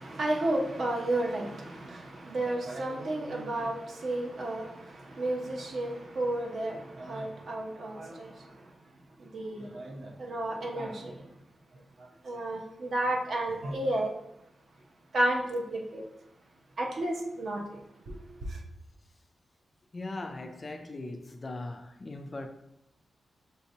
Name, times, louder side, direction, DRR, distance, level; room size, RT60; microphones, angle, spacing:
voice 1, 0.0-8.7 9.2-11.3 12.0-14.1 15.1-16.0 16.8-18.6, right 1 dB, 55° right, 0.6 m, -32 dB
voice 2, 19.9-22.5, left 2 dB, 25° left, 0.3 m, -39 dB
6.5 x 2.7 x 2.7 m
wide cardioid pair, 170°, 0 cm